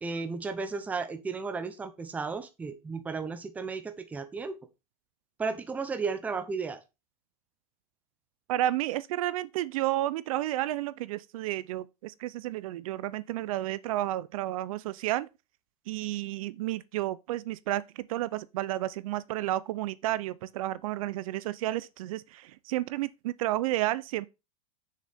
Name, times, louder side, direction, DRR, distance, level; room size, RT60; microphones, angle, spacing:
voice 1, 0.0-4.6 5.4-6.8, right 4 dB, 10° right, 0.6 m, -34 dB
voice 2, 8.5-15.3 15.9-24.3, right 15 dB, 60° right, 0.5 m, -31 dB
6.6 x 6.5 x 3.5 m
supercardioid pair, 160°, 20 cm